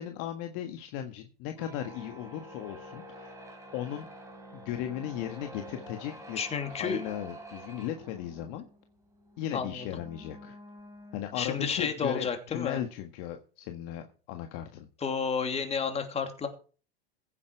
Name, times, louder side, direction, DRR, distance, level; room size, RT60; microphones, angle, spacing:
voice 1, 0.0-3.3 3.7-4.1 4.5-8.7 9.4-10.6 11.1-14.9, left 11 dB, 45° left, 5 dB, 1.6 m, -37 dB
sound 1, 1.5-11.8, equal, 10° right, 3.8 m, -48 dB
voice 2, 6.4-7.0 9.5-9.9 11.3-12.8 15.0-16.5, left 6 dB, 20° left, 6 dB, 2.8 m, -31 dB
15.5 x 8.5 x 4.7 m, 0.38 s
hypercardioid pair, 110°, 31 cm